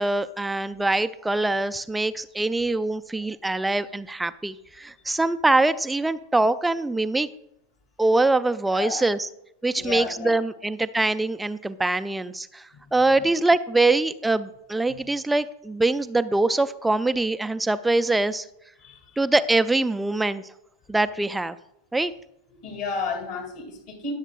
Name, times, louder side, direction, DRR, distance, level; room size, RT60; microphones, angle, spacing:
voice 1, 0.0-7.3 8.0-9.3 9.6-12.6 12.9-18.4 19.2-20.4 20.9-21.6 21.9-22.1, right 2 dB, 5° right, 11 dB, 0.4 m, -23 dB
voice 2, 8.7-9.1 9.8-10.4 12.7-13.4 14.9-15.0 18.8-19.2 22.5-24.1, left 5 dB, 45° left, 3 dB, 2.4 m, -33 dB
19.5 x 7.2 x 2.4 m, 0.81 s
figure-of-eight pair, 90°, 0 cm